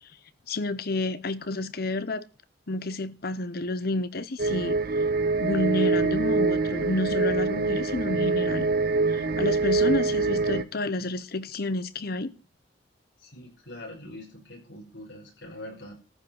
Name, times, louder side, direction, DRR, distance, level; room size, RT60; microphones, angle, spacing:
voice 1, 0.5-2.3 2.7-4.8 5.4-8.7 9.1-12.3, left 2 dB, 55° left, 0.9 m, -30 dB
sound 1, 4.4-10.6, right 3 dB, 55° right, 0.9 m, -25 dB
voice 2, 13.2-15.9, left 1 dB, 70° left, 5.8 m, -43 dB
14.0 x 6.1 x 7.9 m
head